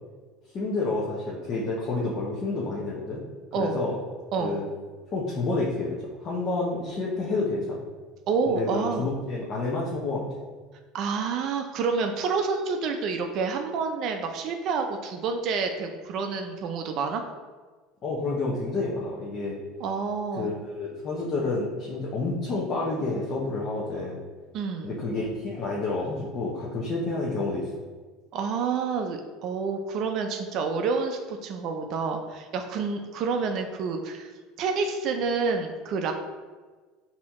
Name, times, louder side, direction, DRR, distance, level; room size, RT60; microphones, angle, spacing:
voice 1, 0.5-3.2 3.5-4.0 4.4-4.6 5.1-7.8 8.5-10.3 18.0-19.6 20.4-24.2 24.8-27.7, left 3 dB, 40° left, -5 dB, 0.8 m, -29 dB
voice 2, 8.3-9.1 10.9-17.2 19.8-20.5 24.5-24.9 28.3-34.3 34.6-36.1, right 5 dB, 55° right, 5 dB, 0.4 m, -28 dB
4.3 x 2.8 x 3.6 m, 1.4 s
supercardioid pair, 105°, 0 cm